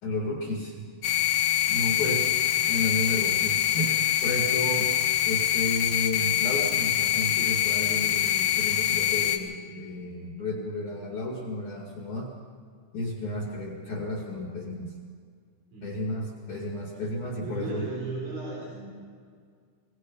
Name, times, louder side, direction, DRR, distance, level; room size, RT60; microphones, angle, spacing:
voice 1, 0.0-0.9 1.7-4.9 5.2-12.3 12.9-14.9 15.8-17.8, left 1 dB, 45° left, -2 dB, 3.0 m, -32 dB
sound 1, 1.0-9.4, left 12 dB, 70° left, 2.4 m, -25 dB
voice 2, 15.7-16.1 17.4-18.9, right 3 dB, 70° right, -5 dB, 6.6 m, -36 dB
24.0 x 19.0 x 5.6 m, 2.1 s
omnidirectional pair, 5.8 m